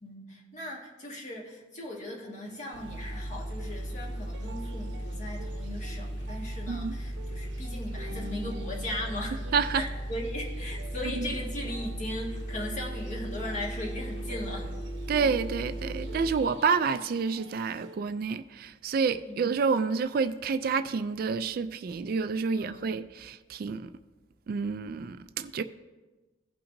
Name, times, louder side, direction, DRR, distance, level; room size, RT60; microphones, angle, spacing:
voice 1, 0.0-9.4 9.7-14.7 19.3-19.4 22.5-22.8, left 1 dB, 45° left, 1.7 m, -38 dB
sound 1, 2.4-18.0, right 2 dB, 85° right, 0.9 m, -49 dB
sound 2, 2.7-16.3, right 1 dB, 70° left, 1.5 m, -36 dB
voice 2, 9.5-9.8 11.0-11.3 15.1-23.9 24.5-25.6, right 5 dB, 55° right, 0.3 m, -29 dB
17.0 x 5.8 x 2.7 m
head